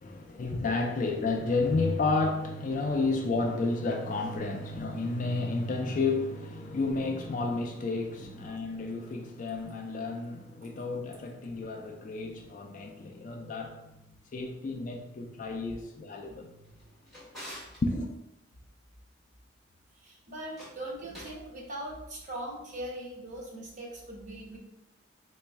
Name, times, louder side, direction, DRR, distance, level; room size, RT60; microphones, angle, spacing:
voice 1, 0.0-13.8 14.3-16.5 17.8-18.1, left 3 dB, 40° left, 0.3 m, -31 dB
Drawer open or close, 16.6-17.8 20.4-21.4, equal, ahead, 1.3 m, -47 dB
voice 2, 20.0-24.6, right 1 dB, 40° right, 0.9 m, -40 dB
4.0 x 2.1 x 3.4 m
head